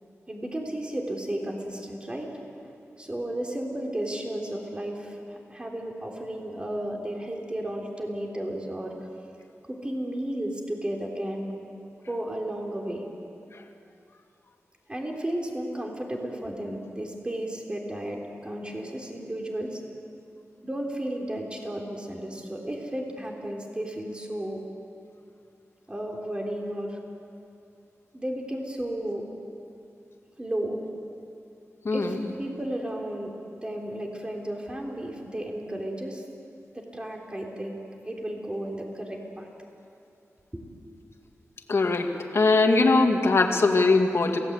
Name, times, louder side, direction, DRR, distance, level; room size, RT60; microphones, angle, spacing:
voice 1, 0.3-2.3 3.0-8.9 9.7-11.6 12.1-13.1 14.9-19.8 20.6-24.6 25.9-27.0 28.1-29.2 30.4-30.8 31.9-36.2 36.7-37.8 38.0-39.5 40.5-40.6, right 1 dB, 20° right, 0 dB, 3.5 m, -33 dB
voice 2, 31.8-32.3 41.7-42.1 42.3-44.4, left 3 dB, 55° left, 3 dB, 2.2 m, -21 dB
27.5 x 18.0 x 8.2 m, 2.6 s
wide cardioid pair, 120°, 5 cm